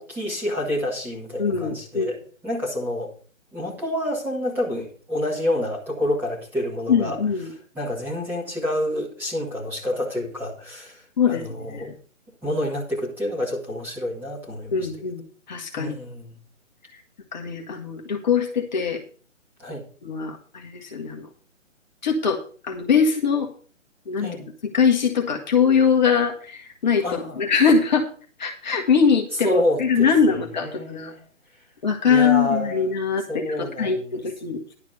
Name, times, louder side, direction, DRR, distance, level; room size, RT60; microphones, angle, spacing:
voice 1, 0.0-2.2 2.4-3.1 3.5-7.2 7.7-11.9 12.4-14.9 15.7-16.3 19.6-19.8 24.2-24.5 27.0-27.4 29.4-31.2 32.1-32.9 33.3-34.2, left 1 dB, 5° right, -5 dB, 2.0 m, -28 dB
voice 2, 1.4-2.1 6.9-7.5 11.2-11.9 14.7-15.2 15.5-15.9 17.3-19.0 20.0-21.3 22.0-22.4 22.7-23.5 24.1-28.0 28.4-31.1 31.8-34.7, left 6 dB, 35° left, 1 dB, 1.3 m, -22 dB
11.0 x 4.9 x 7.9 m, 0.42 s
figure-of-eight pair, 145°, 39 cm